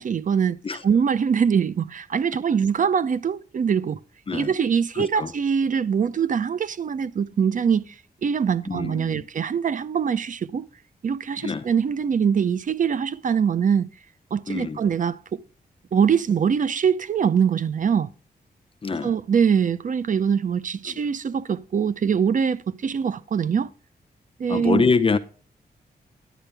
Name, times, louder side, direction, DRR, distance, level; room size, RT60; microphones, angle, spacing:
voice 1, 0.0-0.6 0.8-4.0 4.3-7.9 8.2-10.7 11.0-13.9 14.3-15.4 15.9-18.1 19.0-23.7 24.4-24.8, right 7 dB, 55° right, 0.6 m, -23 dB
voice 2, 5.0-5.3 8.7-9.3 11.4-11.7 14.5-14.8 18.8-19.1 24.5-25.2, left 4 dB, 35° left, 0.6 m, -24 dB
10.0 x 10.0 x 3.4 m
wide cardioid pair, 120°, 16 cm